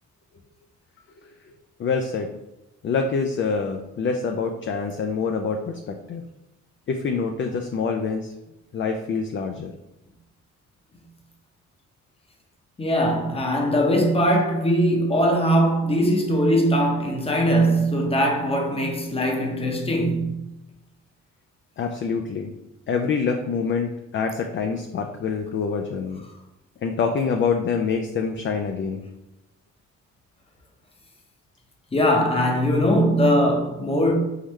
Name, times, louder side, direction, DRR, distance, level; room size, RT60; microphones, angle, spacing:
voice 1, 1.8-2.3 2.8-6.2 6.9-8.3 8.7-9.7 21.8-22.5 22.9-26.2 26.8-29.0, left 5 dB, 40° left, 0.4 m, -26 dB
voice 2, 12.8-20.4 31.9-34.2, equal, 20° left, 0.8 m, -21 dB
3.8 x 3.2 x 3.1 m
cardioid pair, 90°, 30 cm